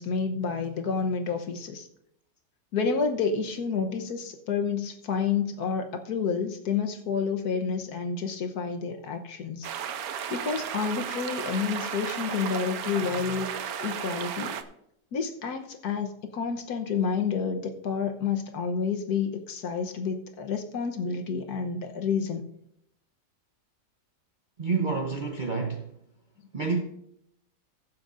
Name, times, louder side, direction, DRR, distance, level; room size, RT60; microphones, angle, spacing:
voice 1, 0.0-1.9 2.7-9.7 10.3-13.5 13.8-14.6 15.1-16.1 16.3-22.4, left 5 dB, 65° left, 1.4 m, -29 dB
sound 1, 9.6-14.6, right 8 dB, 65° right, 1.1 m, -34 dB
voice 2, 24.6-25.9 26.5-26.8, right 4 dB, 45° right, 0.6 m, -28 dB
20.5 x 7.5 x 2.5 m
omnidirectional pair, 1.9 m